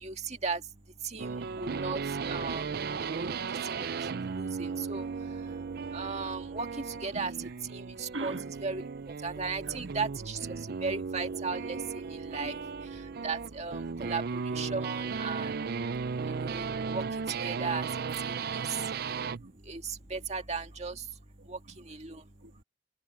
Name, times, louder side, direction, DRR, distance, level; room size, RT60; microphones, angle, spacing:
voice 1, 0.0-0.6 1.0-2.0 2.3-2.7 3.1-3.3 3.7-3.9 4.4-5.1 5.9-6.7 7.0-7.3 7.7-8.4 8.6-8.8 9.2-10.4 10.8-12.6 13.2-15.5 16.3-16.6 16.9-17.0 17.4-17.8 18.3-18.4 19.7-19.8 20.1-21.0 21.5-21.6 21.9-22.2, right 4 dB, 35° right, 1.9 m, -36 dB
sound 1, 1.2-19.4, right 5 dB, 55° right, 0.5 m, -36 dB
voice 2, 8.1-8.5 9.7-9.9 11.7-11.8 12.4-12.6 13.7-14.1 17.4-17.5 18.6-19.5 22.1-22.6, right 2 dB, 80° right, 1.7 m, -43 dB
head